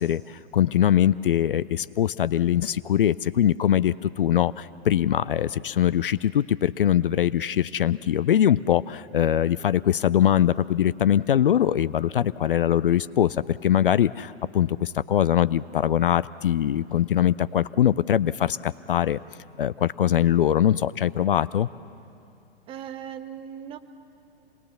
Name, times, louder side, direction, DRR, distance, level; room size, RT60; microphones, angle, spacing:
voice 1, 0.0-19.2 19.6-21.7, left 10 dB, 55° left, 17 dB, 0.4 m, -22 dB
voice 2, 22.7-23.8, right 9 dB, 15° right, 10 dB, 0.8 m, -38 dB
26.5 x 20.5 x 7.0 m, 2.6 s
figure-of-eight pair, 110°, 32 cm